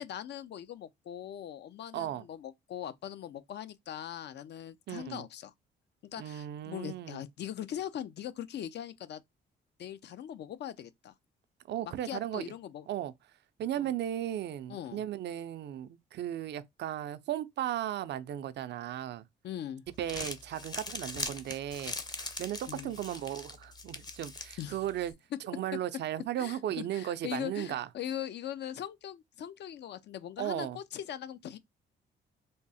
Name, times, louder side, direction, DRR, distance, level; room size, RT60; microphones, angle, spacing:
voice 1, 0.0-5.5 6.1-9.2 9.8-11.1 11.8-12.9 13.8-13.9 14.7-15.0 19.4-19.8 22.7-22.9 24.6-24.8 26.4-31.6, left 10 dB, 60° left, 0.5 m, -41 dB
voice 2, 1.9-2.2 4.9-5.2 6.2-7.2 11.7-12.4 12.9-13.1 13.6-19.2 20.0-21.9 22.4-25.1 25.4-27.9 30.4-30.8, right 11 dB, 60° right, 0.4 m, -36 dB
Crumpling crinkling, 19.9-25.1, left 2 dB, 20° left, 0.7 m, -41 dB
3.5 x 2.0 x 4.0 m
cardioid pair, 90°, 20 cm